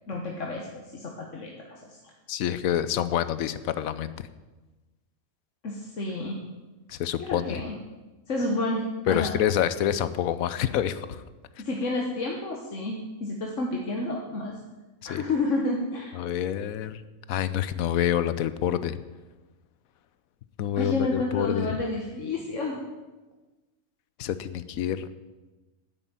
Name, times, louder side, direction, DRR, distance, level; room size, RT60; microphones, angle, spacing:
voice 1, 0.1-2.0 5.6-6.4 7.2-7.8 8.3-9.4 11.6-14.6 15.0-16.2 20.8-22.8, left 2 dB, 60° left, 0 dB, 1.7 m, -30 dB
voice 2, 2.3-4.1 6.9-7.6 9.1-11.2 15.1-15.2 16.2-17.0 17.3-19.0 20.6-21.8 24.2-25.1, left 10 dB, 80° left, 14 dB, 1.1 m, -27 dB
10.0 x 8.2 x 9.4 m, 1.2 s
omnidirectional pair, 1.5 m